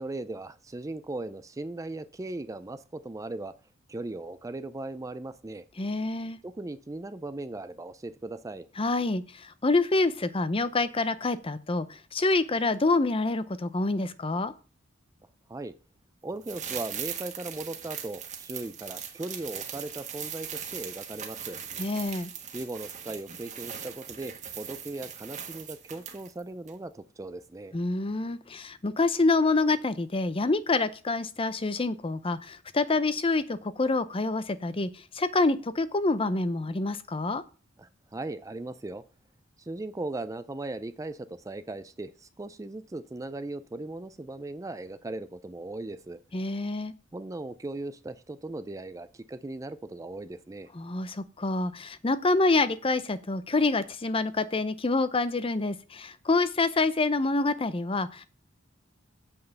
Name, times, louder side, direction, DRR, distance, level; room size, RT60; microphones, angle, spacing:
voice 1, 0.0-3.5 3.9-5.7 6.4-8.7 15.5-15.7 16.2-21.6 22.5-27.8 37.8-39.0 39.6-46.2 47.1-50.7, right 2 dB, 15° right, 13 dB, 0.4 m, -38 dB
voice 2, 5.8-6.4 8.8-14.5 21.8-22.3 27.7-37.4 46.3-46.9 50.7-58.3, left 3 dB, 25° left, 13 dB, 0.6 m, -27 dB
sound 1, 16.4-26.4 26.7-26.8, right 8 dB, 35° right, 1.5 m, -40 dB
8.1 x 5.4 x 6.8 m, 0.36 s
head